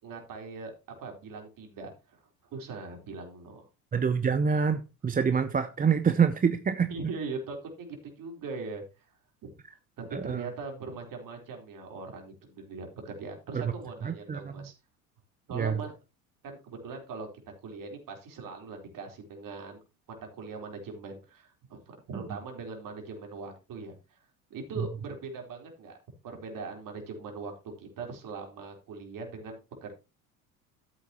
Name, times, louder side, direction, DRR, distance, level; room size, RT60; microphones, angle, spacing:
voice 1, 0.0-0.7 1.0-3.7 6.9-9.1 9.4-9.5 10.0-14.7 15.5-15.9 16.4-17.3 17.6-19.8 20.3-24.2 24.5-26.0 26.2-29.9, right 4 dB, 45° right, 4.2 m, -41 dB
voice 2, 3.9-6.9 10.1-10.5 13.6-13.7 14.0-14.7 15.5-15.8 24.8-24.9, right 6 dB, 20° right, 0.8 m, -26 dB
13.0 x 8.3 x 3.0 m
hypercardioid pair, 65°, 45 cm